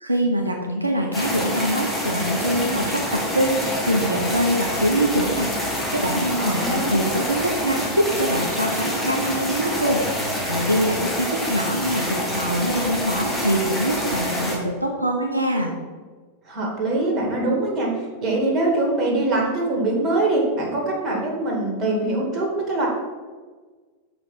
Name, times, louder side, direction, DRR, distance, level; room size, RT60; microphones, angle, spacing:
voice 1, 0.0-5.5 5.9-10.0 10.4-15.7, right 1 dB, 85° right, 1 dB, 0.7 m, -24 dB
sound 1, 1.1-14.6, equal, 5° left, 1.8 m, -26 dB
voice 2, 6.4-6.9 16.5-22.9, right 2 dB, 30° right, -1 dB, 2.3 m, -23 dB
5.9 x 5.0 x 5.6 m, 1.4 s
figure-of-eight pair, 90°, 0 cm